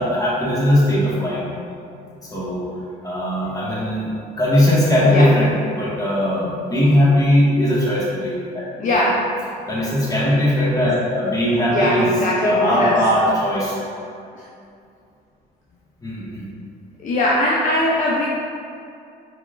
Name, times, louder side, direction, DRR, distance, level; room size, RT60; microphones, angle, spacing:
voice 1, 0.0-1.5 2.3-2.6 3.0-4.1 4.4-8.9 9.7-12.1 12.4-13.7 16.0-16.5, left 1 dB, 20° left, -7 dB, 1.3 m, -19 dB
voice 2, 5.0-5.4 8.8-9.3 11.7-13.0 14.4-14.5 17.0-18.3, left 1 dB, 50° left, -5 dB, 0.6 m, -20 dB
4.8 x 4.3 x 2.3 m, 2.5 s
cardioid pair, 110°, 17 cm